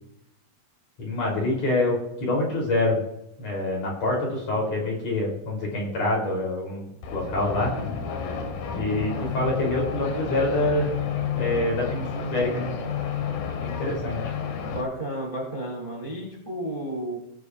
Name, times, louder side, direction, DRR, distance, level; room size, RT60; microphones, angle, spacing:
voice 1, 1.0-3.0 3.4-7.7 8.8-10.9 11.3-12.7 13.6-14.2, left 2 dB, 45° left, -2 dB, 4.1 m, -26 dB
sound 1, 7.0-14.8, left 6 dB, 70° left, 2.9 m, -31 dB
voice 2, 14.6-17.2, right 1 dB, 15° right, -2 dB, 2.3 m, -32 dB
19.5 x 9.5 x 2.4 m, 0.83 s
omnidirectional pair, 4.4 m